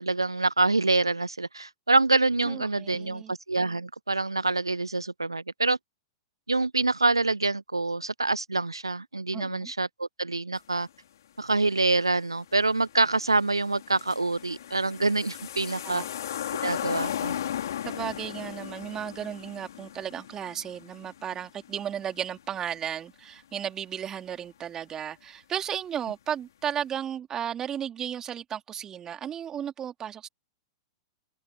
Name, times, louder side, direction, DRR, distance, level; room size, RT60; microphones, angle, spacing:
voice 1, 0.0-5.8 6.5-10.9 11.4-16.0 16.6-17.3, right 3 dB, 85° right, 0.5 m, -26 dB
voice 2, 2.4-3.3 9.3-9.7 15.8-16.1 17.9-30.3, right 9 dB, 25° right, 3.4 m, -34 dB
sound 1, 12.3-12.4 12.8-22.5 22.8-22.9, left 10 dB, 60° left, 4.0 m, -36 dB
figure-of-eight pair, 100°, 2 cm